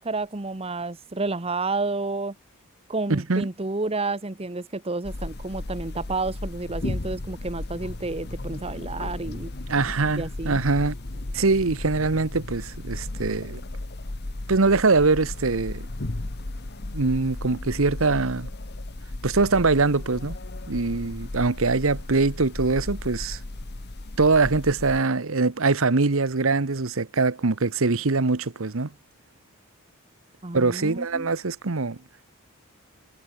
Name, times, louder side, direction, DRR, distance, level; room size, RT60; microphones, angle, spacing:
voice 1, 0.0-2.3 2.9-9.5 10.2-10.6 30.4-31.3, right 3 dB, 25° right, 1.1 m, -30 dB
voice 2, 3.1-3.5 9.7-10.9 11.3-13.6 14.5-15.8 16.9-18.5 19.2-20.4 20.7-23.4 24.2-28.9 30.5-32.0, right 3 dB, 65° right, 1.0 m, -23 dB
sound 1, 5.0-25.0, left 2 dB, 50° left, 1.2 m, -35 dB
head